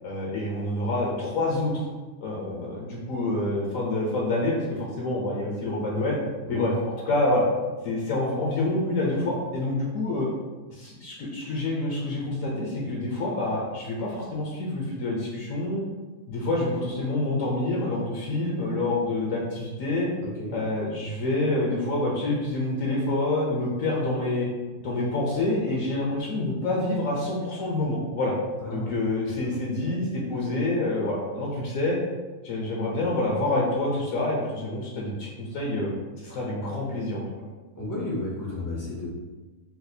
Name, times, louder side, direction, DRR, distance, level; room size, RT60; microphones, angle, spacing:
voice 1, 0.0-1.9 2.2-6.2 6.5-6.7 7.1-7.4 7.8-10.3 10.7-15.8 16.3-20.1 20.5-24.5 24.8-28.3 28.7-32.0 32.4-35.9 36.2-37.2, left 2 dB, 70° left, -3 dB, 1.0 m, -27 dB
voice 2, 20.2-20.6 28.6-28.9 29.3-29.4 37.8-39.1, left 1 dB, 30° left, -6 dB, 0.3 m, -32 dB
4.0 x 2.4 x 2.7 m, 1.2 s
omnidirectional pair, 1.5 m